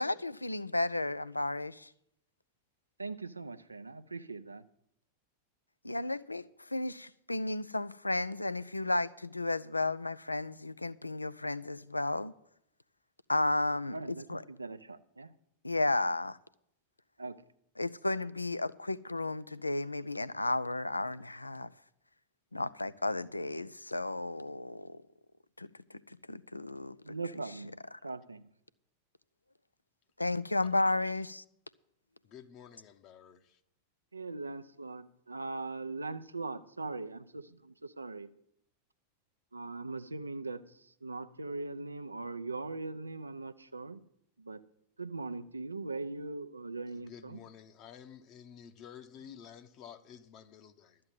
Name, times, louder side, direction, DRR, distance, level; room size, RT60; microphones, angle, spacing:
voice 1, 0.0-1.9 5.8-12.3 13.3-14.0 14.3-14.4 15.6-16.4 17.8-21.7 22.5-25.0 25.6-25.7 26.1-27.2 30.2-31.4, left 2 dB, 85° left, 0.4 m, -33 dB
voice 2, 3.0-4.6 13.9-15.3 17.2-17.4 27.0-27.8 28.0-28.5 34.1-38.3 39.5-44.0 44.4-44.6 45.0-47.4, right 3 dB, 80° right, 0.6 m, -40 dB
voice 3, 32.2-33.6 46.9-51.0, left 8 dB, 40° left, 0.9 m, -52 dB
12.5 x 7.7 x 7.6 m
figure-of-eight pair, 90°, 0 cm